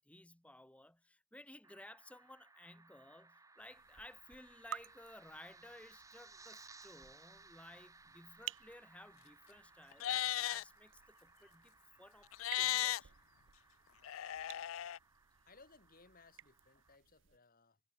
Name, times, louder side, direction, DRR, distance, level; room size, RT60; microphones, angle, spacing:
voice 1, 0.0-13.1, left 1 dB, 5° left, 0.9 m, -57 dB
sound 1, 1.6-17.0, right 3 dB, 15° right, 1.7 m, -63 dB
sound 2, 3.6-17.4, right 10 dB, 65° right, 0.6 m, -55 dB
Livestock farm animals working animals, 9.9-10.6 12.3-13.0 14.0-15.0, left 13 dB, 85° left, 0.4 m, -36 dB
voice 2, 15.5-17.8, left 3 dB, 45° left, 2.6 m, -63 dB
head